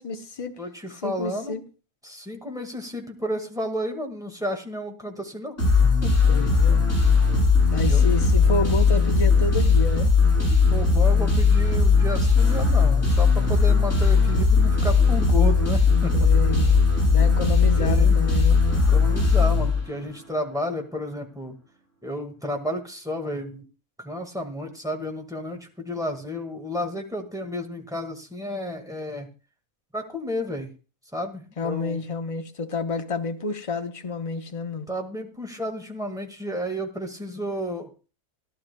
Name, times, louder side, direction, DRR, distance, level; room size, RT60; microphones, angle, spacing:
voice 1, 0.0-0.6 1.0-1.6 6.3-6.9 7.7-10.1 16.1-16.8 17.1-18.6 31.6-34.9, left 3 dB, 30° left, 0.8 m, -30 dB
voice 2, 0.6-1.6 2.0-5.6 6.0-6.1 7.8-8.0 10.5-16.3 17.7-18.2 18.9-21.5 22.0-23.6 24.0-29.3 29.9-30.7 31.1-32.0 34.9-37.9, equal, 5° right, 1.6 m, -32 dB
sound 1, 5.6-20.2, left 4 dB, 55° left, 8.1 m, -19 dB
17.5 x 11.5 x 2.2 m
omnidirectional pair, 1.5 m